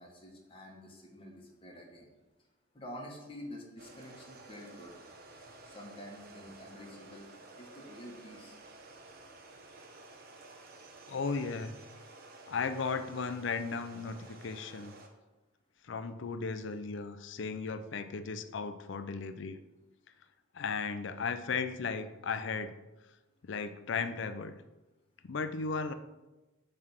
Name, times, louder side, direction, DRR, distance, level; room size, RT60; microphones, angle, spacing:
voice 1, 0.0-2.1 2.7-4.9 5.7-7.3 7.6-8.5, equal, 25° left, -1 dB, 1.2 m, -48 dB
sound 1, 3.8-15.1, right 2 dB, 45° right, 0.8 m, -53 dB
voice 2, 11.1-11.8 12.5-14.2 14.4-14.9 15.8-19.6 20.5-22.7 23.5-24.6 25.2-25.9, left 5 dB, 60° left, 11 dB, 0.5 m, -35 dB
7.4 x 3.3 x 5.8 m, 1.1 s
head